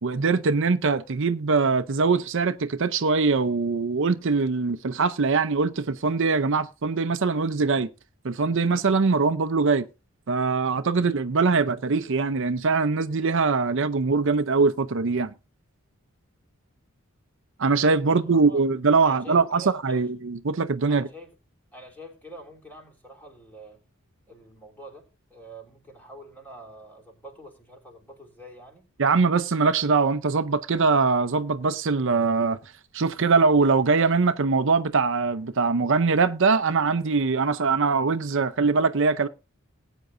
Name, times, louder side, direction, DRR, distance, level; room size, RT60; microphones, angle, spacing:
voice 1, 0.0-7.9 8.2-9.9 10.3-15.3 17.6-21.1 29.0-32.6 32.9-39.3, right 4 dB, 60° right, 0.6 m, -22 dB
voice 2, 18.0-18.6 19.0-20.1 20.9-21.3 21.7-23.8 24.3-28.9, right 1 dB, 10° left, 3.6 m, -46 dB
19.0 x 9.1 x 2.6 m
head